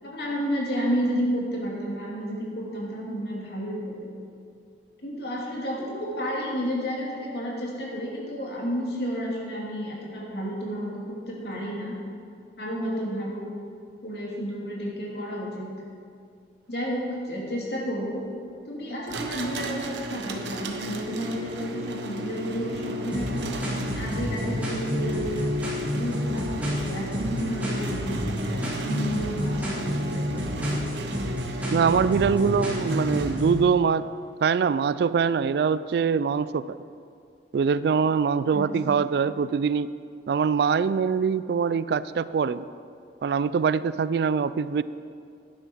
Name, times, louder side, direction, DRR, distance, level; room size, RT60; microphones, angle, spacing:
voice 1, 0.0-4.1 5.0-11.9 12.6-13.5 14.0-15.7 16.7-18.2 18.7-25.5 25.9-30.7 38.5-39.0, equal, 65° left, -3 dB, 2.6 m, -31 dB
sound 1, 19.1-33.8, right 1 dB, 85° right, 0.9 m, -34 dB
sound 2, 23.1-33.6, left 1 dB, 10° right, 2.6 m, -30 dB
voice 2, 31.7-34.1 34.4-36.8 37.5-39.9 40.3-42.6 43.2-44.8, right 6 dB, 65° right, 16 dB, 0.3 m, -23 dB
11.5 x 10.0 x 4.5 m, 2.4 s
head